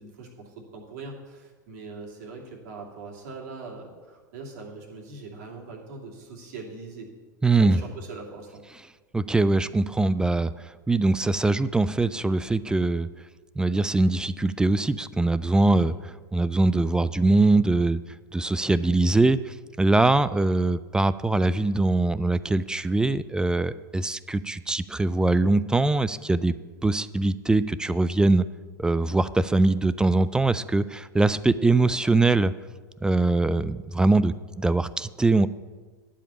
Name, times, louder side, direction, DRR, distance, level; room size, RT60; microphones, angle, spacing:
voice 1, 0.0-7.1 7.6-8.6 15.7-15.9, right 3 dB, 55° right, -1 dB, 2.6 m, -41 dB
voice 2, 7.4-7.8 9.1-13.1 13.6-15.9 16.3-18.0 18.3-26.5 26.8-28.4 28.8-32.5 33.0-35.5, right 2 dB, 5° right, 16 dB, 0.3 m, -22 dB
11.5 x 5.1 x 8.3 m, 1.4 s
hypercardioid pair, 95°, 11 cm